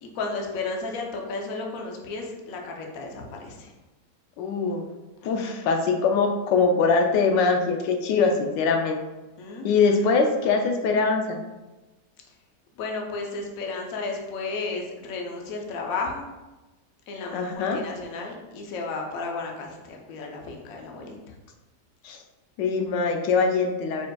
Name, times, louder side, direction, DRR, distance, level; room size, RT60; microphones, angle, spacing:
voice 1, 0.0-3.7 9.4-10.1 12.8-16.2 17.1-21.2, left 3 dB, 60° left, 1 dB, 1.1 m, -33 dB
voice 2, 4.4-4.8 5.2-9.0 9.6-11.4 17.3-17.8 22.0-22.2 22.6-24.1, left 4 dB, 90° left, 3 dB, 1.3 m, -22 dB
4.9 x 4.4 x 2.3 m, 1.1 s
omnidirectional pair, 1.9 m